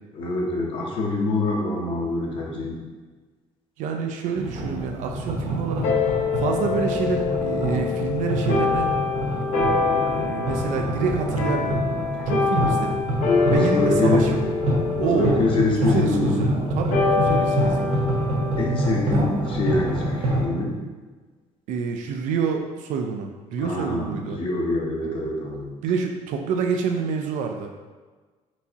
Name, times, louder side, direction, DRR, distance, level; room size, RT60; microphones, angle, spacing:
voice 1, 0.1-2.8 12.6-12.7 13.4-14.3 15.0-16.4 18.6-20.8 23.6-25.7, left 2 dB, 45° left, -2 dB, 0.9 m, -25 dB
voice 2, 3.8-5.9 6.4-8.9 9.8-11.9 12.3-13.0 13.5-14.5 15.0-18.0 19.1-19.2 21.7-24.4 25.8-27.7, right 6 dB, 80° right, 3 dB, 0.5 m, -28 dB
sound 1, 4.4-20.4, right 1 dB, 55° right, 1.0 m, -26 dB
sound 2, 5.8-20.6, left 4 dB, 80° left, 1.1 m, -26 dB
4.5 x 4.0 x 2.8 m, 1.3 s
cardioid pair, 165°, 13 cm